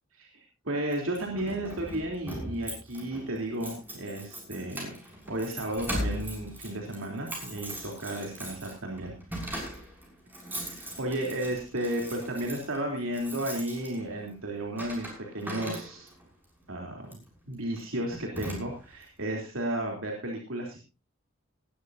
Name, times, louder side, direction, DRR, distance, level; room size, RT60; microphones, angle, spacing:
voice 1, 0.2-4.9 5.3-9.1 10.7-16.1 16.7-17.1 17.5-20.8, right 1 dB, 80° right, 0 dB, 3.4 m, -33 dB
Keys jangling, 0.9-16.3 17.0-17.3 17.8-17.9 18.1-19.0, equal, 10° right, 6.3 m, -40 dB
20.0 x 12.5 x 2.7 m, 0.29 s
head